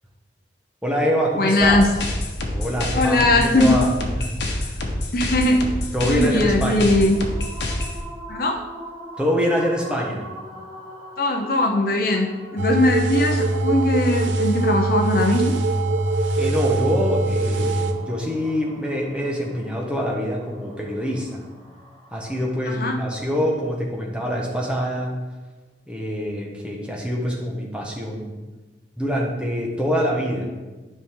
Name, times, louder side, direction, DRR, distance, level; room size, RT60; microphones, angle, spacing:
voice 1, 0.8-1.8 2.5-4.8 5.9-7.0 9.2-10.3 16.4-21.4 22.1-25.2 25.9-28.4 29.0-30.5, equal, 5° right, -2 dB, 1.2 m, -25 dB
voice 2, 1.4-1.9 2.9-3.8 5.1-5.6 6.0-7.2 8.3-8.6 11.2-15.6 22.8-23.0, left 2 dB, 50° left, 4 dB, 0.7 m, -20 dB
sound 1, 1.6-8.0, left 1 dB, 75° left, 1.3 m, -27 dB
sound 2, 6.4-23.7, equal, 45° right, 2.4 m, -43 dB
sound 3, 12.6-17.9, right 2 dB, 85° right, 0.7 m, -22 dB
11.5 x 5.4 x 3.8 m, 1.2 s
head